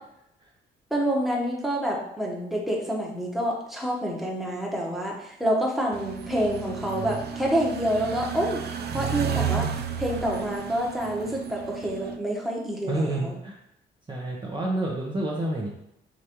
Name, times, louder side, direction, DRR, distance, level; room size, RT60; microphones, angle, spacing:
voice 1, 0.9-8.6 8.9-9.7 10.0-13.4, equal, ahead, -2 dB, 1.1 m, -27 dB
sound 1, 5.9-12.2, right 8 dB, 55° right, 0.4 m, -32 dB
voice 2, 9.3-9.7 12.9-13.6 14.1-15.7, right 1 dB, 25° right, -3 dB, 0.7 m, -29 dB
4.9 x 3.3 x 2.9 m, 0.82 s
cardioid pair, 90°, 20 cm